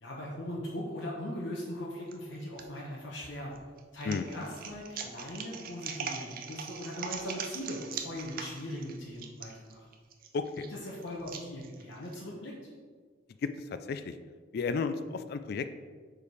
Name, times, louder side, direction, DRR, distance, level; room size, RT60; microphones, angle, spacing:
voice 1, 0.0-3.5 3.9-9.8 10.7-12.5, equal, 85° left, -4 dB, 1.1 m, -39 dB
sound 1, 2.1-2.6 3.2-12.2, right 6 dB, 50° right, 0.5 m, -41 dB
voice 2, 10.3-10.7 13.4-13.5 13.9-14.2 14.5-15.7, left 5 dB, 55° left, 10 dB, 0.3 m, -32 dB
5.1 x 4.7 x 4.8 m, 1.6 s
head